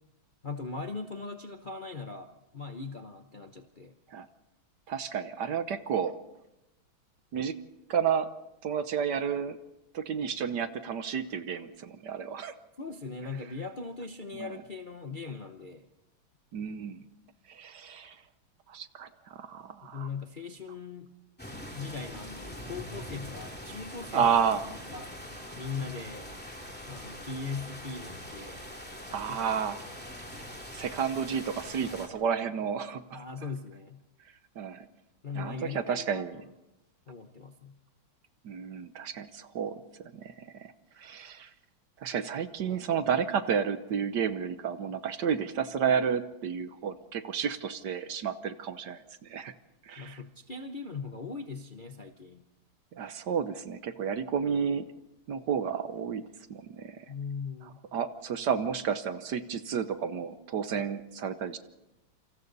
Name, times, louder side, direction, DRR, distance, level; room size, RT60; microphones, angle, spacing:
voice 1, 0.4-3.9 12.8-15.9 19.8-21.1 21.8-24.3 24.7-25.1 25.6-26.3 26.9-28.6 29.1-29.9 33.1-34.0 35.2-36.4 37.1-37.8 50.0-52.4 57.1-57.8, left 4 dB, 40° left, 5 dB, 0.7 m, -40 dB
voice 2, 4.9-6.2 7.3-7.6 7.9-8.3 8.6-9.6 9.9-12.5 14.4-14.5 16.5-17.0 17.5-18.2 18.7-20.1 24.1-24.6 29.1-29.8 30.7-33.0 34.6-34.9 35.3-36.4 38.4-39.8 40.1-41.5 42.0-49.5 49.9-50.2 52.9-54.9 55.3-57.1 57.9-61.6, right 7 dB, 60° right, 11 dB, 1.4 m, -31 dB
sound 1, 21.4-32.1, equal, 5° left, 2.5 m, -43 dB
28.0 x 26.0 x 4.1 m, 0.93 s
omnidirectional pair, 2.2 m